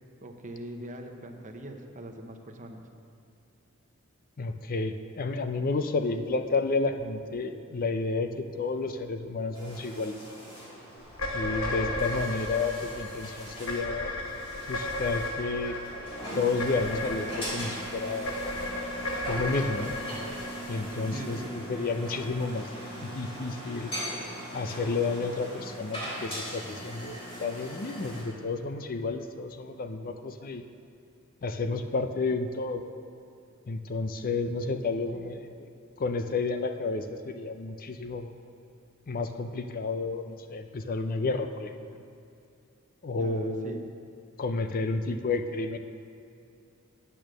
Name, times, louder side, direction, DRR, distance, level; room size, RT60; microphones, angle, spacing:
voice 1, 0.2-2.8 21.1-21.5 43.2-43.8, right 1 dB, 35° right, 4 dB, 0.8 m, -41 dB
voice 2, 4.4-10.2 11.3-14.1 14.7-15.8 16.3-18.3 19.3-19.9 20.7-22.7 23.0-23.9 24.5-30.6 31.4-32.8 33.7-35.7 36.0-38.3 39.1-41.8 43.0-43.8 44.4-45.8, left 3 dB, 45° left, 7 dB, 0.5 m, -31 dB
sound 1, 9.5-28.2, equal, 25° left, 3.1 m, -40 dB
sound 2, 11.1-21.6, left 1 dB, 75° left, 1.1 m, -35 dB
8.9 x 8.5 x 6.3 m, 2.6 s
head